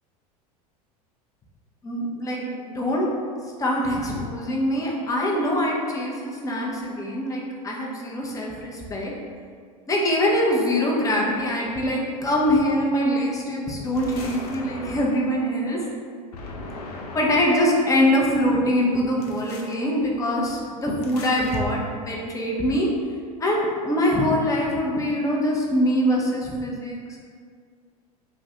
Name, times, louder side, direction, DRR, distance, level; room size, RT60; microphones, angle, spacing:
voice 1, 1.8-3.1 3.6-9.1 9.9-15.8 17.1-22.9 23.4-27.2, equal, 15° left, -2 dB, 0.6 m, -23 dB
sound 1, 13.9-15.4 16.3-17.8 19.2-19.8 21.0-21.6, left 2 dB, 75° left, 0.4 m, -38 dB
2.5 x 2.1 x 3.8 m, 2.1 s
hypercardioid pair, 80°, 20 cm